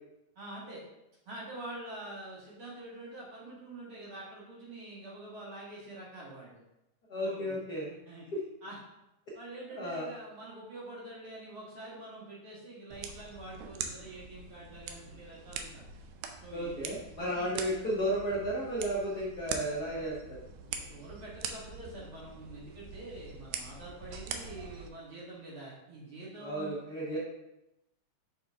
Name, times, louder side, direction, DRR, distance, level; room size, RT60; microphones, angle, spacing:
voice 1, 0.4-0.8 1.3-6.6 7.2-7.6 8.1-8.2 8.6-8.8 9.3-15.9 16.4-16.9 17.3-17.5 20.6-26.8, right 2 dB, 45° right, -6 dB, 2.2 m, -46 dB
voice 2, 7.1-7.9 8.3-8.4 9.8-10.0 16.5-20.4 26.4-27.2, equal, 65° left, -5 dB, 0.9 m, -33 dB
sound 1, 12.9-24.9, right 6 dB, 80° right, 2.1 m, -43 dB
6.4 x 5.8 x 3.6 m, 0.91 s
omnidirectional pair, 3.7 m